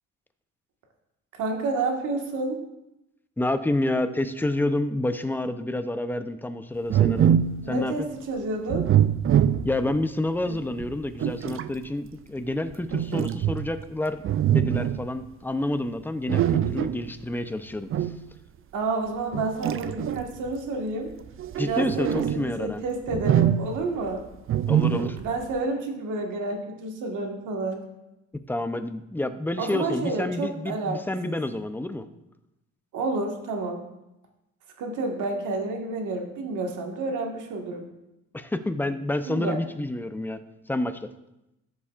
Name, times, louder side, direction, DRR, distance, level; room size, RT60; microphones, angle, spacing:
voice 1, 1.3-2.6 7.6-8.9 10.4-10.6 18.7-21.1 21.6-24.2 25.2-27.8 29.6-31.0 31.2-31.4 32.9-33.8 34.8-37.9 39.3-39.6, right 3 dB, 85° right, 2 dB, 1.7 m, -30 dB
voice 2, 3.4-7.4 7.7-8.1 9.6-14.2 14.5-18.1 21.6-22.8 24.7-25.2 28.5-32.1 38.3-40.4 40.7-41.1, left 1 dB, 5° left, 10 dB, 0.6 m, -29 dB
sound 1, 6.9-7.7 8.7-10.0 10.8-11.7 12.9-13.8 14.2-15.1 16.3-17.1 17.9-18.2 19.3-20.5 21.3-22.5 23.1-23.9 24.5-25.3, right 10 dB, 45° right, 0.4 m, -24 dB
13.5 x 7.1 x 2.5 m, 0.91 s
cardioid pair, 90°, 30 cm